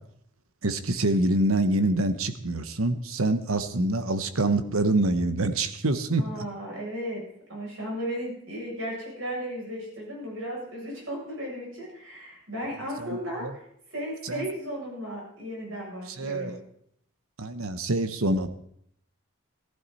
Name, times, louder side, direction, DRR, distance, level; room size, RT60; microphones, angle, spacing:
voice 1, 0.6-6.2 13.0-13.5 14.2-14.5 16.2-16.6 17.4-18.5, right 2 dB, 90° right, 11 dB, 1.2 m, -26 dB
voice 2, 6.2-7.2 7.5-13.5 13.9-16.6, equal, 70° right, -3 dB, 7.6 m, -35 dB
15.0 x 14.0 x 4.2 m, 0.71 s
head